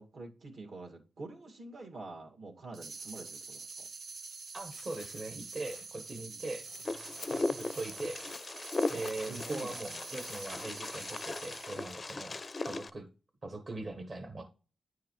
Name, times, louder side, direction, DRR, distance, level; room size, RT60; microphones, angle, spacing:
voice 1, 0.0-3.9 6.3-6.4 9.3-10.0, right 3 dB, 70° right, 2 dB, 2.0 m, -46 dB
sound 1, 2.7-11.9, right 4 dB, 85° right, 1.1 m, -46 dB
voice 2, 4.5-6.7 7.3-8.2 8.9-12.4 12.6-13.1 13.4-14.4, right 2 dB, 40° right, 4 dB, 0.9 m, -41 dB
sound 2, 4.6-10.9 11.3-11.4, left 7 dB, 85° left, 0.5 m, -54 dB
Wind, 6.8-12.9, left 3 dB, 30° left, 0.4 m, -38 dB
9.4 x 4.7 x 3.1 m, 0.34 s
wide cardioid pair, 125°, 0 cm